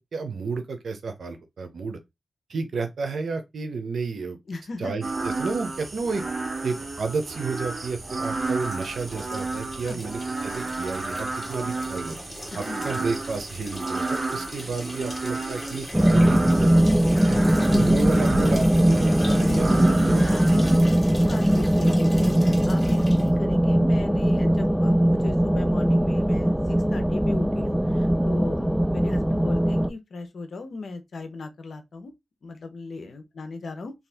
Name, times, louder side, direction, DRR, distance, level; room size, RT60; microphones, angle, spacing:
voice 1, 0.1-2.0 2.5-4.4 4.8-6.2 6.6-12.2 12.5-16.7 17.0-17.3 17.7-20.6, right 4 dB, 85° right, 0.6 m, -31 dB
voice 2, 4.5-4.9 9.8-10.0 12.5-12.8 17.5-17.9 19.4-20.8 21.2-32.1 32.4-33.9, left 3 dB, 75° left, 0.7 m, -37 dB
sound 1, 5.0-20.8, right 3 dB, 50° right, 0.8 m, -32 dB
sound 2, 8.2-23.3, left 1 dB, 20° left, 1.3 m, -40 dB
sound 3, 15.9-29.9, right 1 dB, 5° right, 0.3 m, -20 dB
2.8 x 2.4 x 3.3 m
cardioid pair, 55°, 0 cm